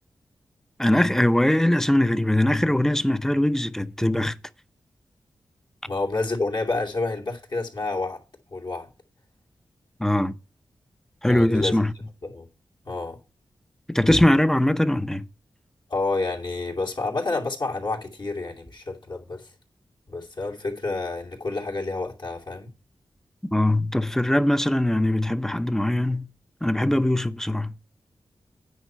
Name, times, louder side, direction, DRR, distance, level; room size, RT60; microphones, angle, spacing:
voice 1, 0.8-4.4 10.0-10.3 11.2-11.9 13.9-15.2 23.5-26.3 26.6-27.7, left 1 dB, 5° left, 0.7 m, -21 dB
voice 2, 5.8-8.2 8.5-8.9 11.2-11.8 12.2-12.5 12.8-13.2 15.9-19.5 20.1-22.7, left 3 dB, 60° left, 2.6 m, -29 dB
9.5 x 4.5 x 7.4 m
cardioid pair, 50°, 8 cm